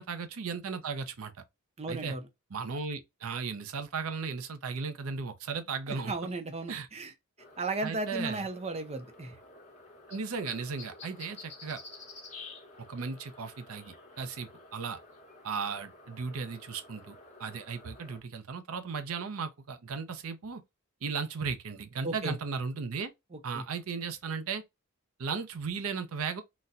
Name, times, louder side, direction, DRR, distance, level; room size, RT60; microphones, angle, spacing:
voice 1, 0.0-1.3 1.9-2.1 2.5-6.1 6.7-6.9 7.8-8.5 10.1-11.8 12.8-15.0 15.4-20.6 21.0-23.1 23.4-24.6 25.2-26.4, right 5 dB, 75° right, 0.6 m, -36 dB
voice 2, 1.8-2.3 5.9-7.1 7.6-9.4 22.0-22.4 23.3-23.6, right 2 dB, 30° right, 0.6 m, -35 dB
sound 1, 7.4-18.2, left 3 dB, 35° left, 1.1 m, -51 dB
4.1 x 2.2 x 2.4 m
head